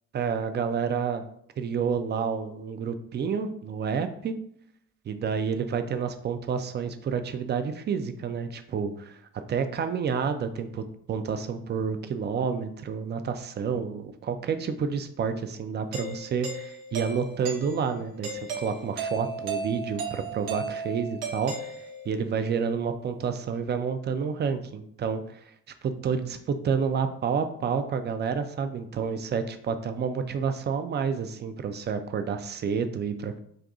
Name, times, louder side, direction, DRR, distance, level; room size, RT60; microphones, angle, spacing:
voice 1, 0.1-1.2 1.6-4.3 5.1-9.2 9.5-21.5 22.1-25.4 25.8-33.4, right 6 dB, 25° right, 9 dB, 0.3 m, -29 dB
Doorbell, 15.9-22.3, right 4 dB, 60° right, 0.8 m, -35 dB
2.6 x 2.4 x 3.7 m, 0.67 s
hypercardioid pair, 45°, 44 cm